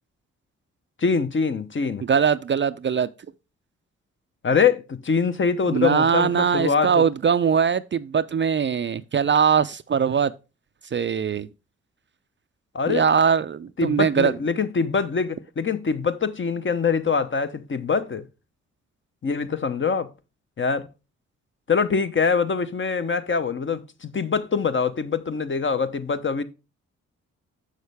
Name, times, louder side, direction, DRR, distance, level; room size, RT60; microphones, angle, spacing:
voice 1, 1.0-2.0 4.4-7.0 12.7-13.0 13.8-18.2 19.2-20.1 20.6-20.9 21.7-26.4, left 5 dB, 40° left, 0.8 m, -24 dB
voice 2, 2.0-3.1 5.7-10.3 10.9-11.5 12.9-14.3, right 7 dB, 35° right, 0.4 m, -21 dB
6.4 x 6.4 x 3.4 m
supercardioid pair, 40°, 32 cm